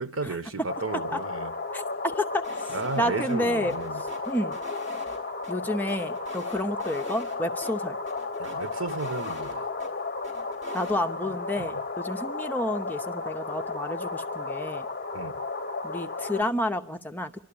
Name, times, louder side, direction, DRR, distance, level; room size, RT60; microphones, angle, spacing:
voice 1, 0.0-1.5 2.7-4.0 8.4-9.7 11.3-11.8 15.1-15.4, right 3 dB, 80° right, 1.2 m, -34 dB
sound 1, 0.7-16.4, left 3 dB, 45° left, 0.8 m, -33 dB
voice 2, 1.7-2.4 3.0-3.7 4.3-4.6 5.5-8.0 10.7-14.8 15.8-17.4, left 1 dB, 10° left, 0.8 m, -30 dB
sound 2, 2.4-3.0 3.2-3.4 3.7-5.5 5.9-7.4 7.6-7.7 8.1-9.9 10.2-11.0, equal, 35° right, 5.8 m, -46 dB
26.5 x 12.5 x 8.6 m
head